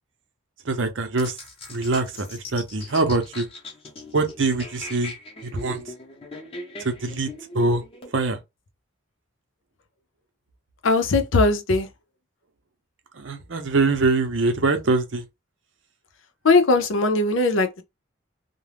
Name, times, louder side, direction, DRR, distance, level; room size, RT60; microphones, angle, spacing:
voice 1, 0.7-1.4 1.7-3.5 4.1-5.1 5.4-5.8 6.8-7.3 7.5-7.8 8.1-8.4 13.2-15.2, right 3 dB, 65° right, 0.7 m, -23 dB
sound 1, 1.2-8.1, left 2 dB, 30° left, 0.8 m, -40 dB
voice 2, 10.8-11.9 16.4-17.8, left 3 dB, 75° left, 0.6 m, -19 dB
2.4 x 2.1 x 3.3 m
head